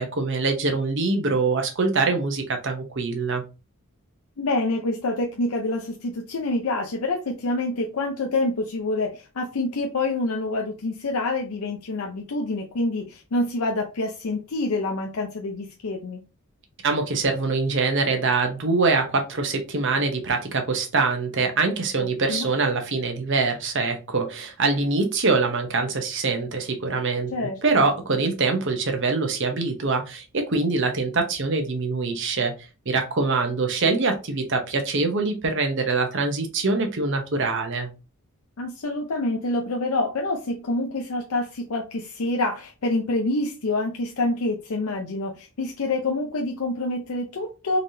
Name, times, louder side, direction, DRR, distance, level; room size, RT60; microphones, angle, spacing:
voice 1, 0.0-3.4 16.8-32.5 32.9-37.9, right 3 dB, 55° right, 0.9 m, -24 dB
voice 2, 4.4-16.2 22.0-22.5 27.3-27.6 38.6-47.8, left 2 dB, 75° left, 0.6 m, -27 dB
4.0 x 3.3 x 2.7 m
head